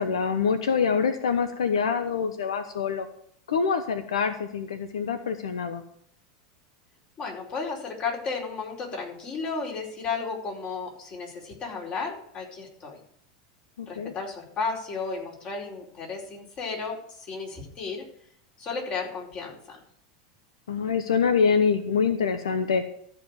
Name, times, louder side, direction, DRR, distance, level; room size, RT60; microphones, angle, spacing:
voice 1, 0.0-3.1 3.5-5.8 13.8-14.1 20.7-22.8, left 6 dB, 90° left, 9 dB, 0.9 m, -25 dB
voice 2, 7.2-13.0 13.9-18.0 18.6-19.8, left 4 dB, 40° left, -1 dB, 4.8 m, -33 dB
14.0 x 5.0 x 9.0 m, 0.67 s
hypercardioid pair, 105°, 3 cm